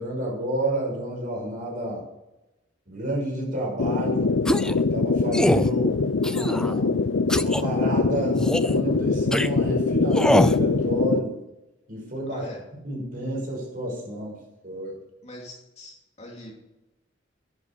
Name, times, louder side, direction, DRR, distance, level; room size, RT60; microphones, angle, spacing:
voice 1, 0.0-2.0 2.9-4.3 4.9-6.0 6.2-7.0 7.3-11.4 11.9-12.5 12.8-14.4 14.6-15.0, right 1 dB, 45° right, -2 dB, 6.0 m, -30 dB
sound 1, 3.8-11.2, left 4 dB, 85° left, 0.6 m, -23 dB
sound 2, 4.4-4.8 5.3-5.7 6.2-6.8 7.3-7.6 8.4-8.7 9.3-9.5 10.1-10.6, left 1 dB, 5° left, 0.3 m, -23 dB
voice 2, 12.3-12.6 15.2-16.5, left 1 dB, 35° left, -1 dB, 3.0 m, -42 dB
11.5 x 10.5 x 6.8 m, 0.98 s
head